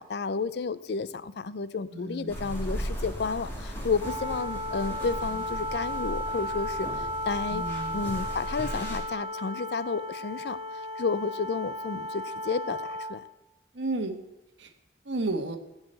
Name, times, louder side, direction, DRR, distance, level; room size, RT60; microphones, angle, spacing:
voice 1, 0.0-7.6 7.9-10.6 11.0-13.2, left 4 dB, 60° left, 16 dB, 0.4 m, -31 dB
voice 2, 1.9-2.3 2.7-2.9 7.5-8.1 13.7-14.2 14.6-14.7 15.0-15.6, right 2 dB, 75° right, 7 dB, 1.2 m, -32 dB
sound 1, 2.3-9.0, equal, 10° left, 2.3 m, -37 dB
Wind instrument woodwind instrument, 4.0-13.2, equal, 85° left, 1.2 m, -35 dB
14.0 x 4.9 x 7.7 m, 0.96 s
head